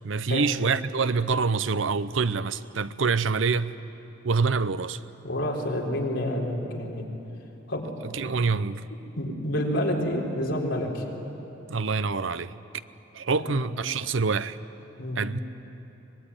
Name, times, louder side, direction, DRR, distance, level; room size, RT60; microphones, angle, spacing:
voice 1, 0.0-3.7 4.2-5.0 8.1-8.8 11.7-12.6 13.1-14.6 15.2-15.4, right 4 dB, 85° right, 0.7 m, -26 dB
voice 2, 5.2-7.0 7.7-7.9 9.2-11.0 13.4-13.6 15.0-15.2, left 1 dB, 75° left, 4.2 m, -28 dB
24.0 x 21.0 x 9.9 m
head